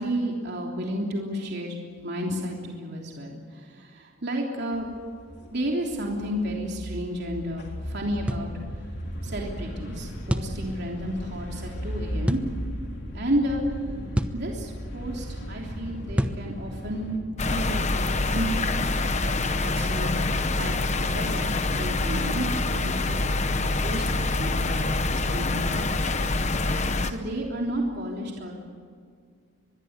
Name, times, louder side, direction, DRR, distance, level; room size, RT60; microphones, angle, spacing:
voice 1, 0.0-1.8 2.0-4.9 5.5-8.5 9.2-12.5 13.1-13.6 14.3-17.2 17.4-18.9 19.2-22.5 22.7-23.2 23.8-26.1 27.0-28.6, equal, 50° right, -1 dB, 3.3 m, -32 dB
sound 1, 4.7-17.2, equal, 55° left, 3.8 m, -36 dB
sound 2, 8.3-8.5 10.3-10.6 12.3-12.5 14.2-14.4 16.2-16.5, equal, 5° right, 1.0 m, -26 dB
sound 3, 17.4-27.1, left 2 dB, 35° left, 1.1 m, -26 dB
25.0 x 21.5 x 8.2 m, 2.1 s
head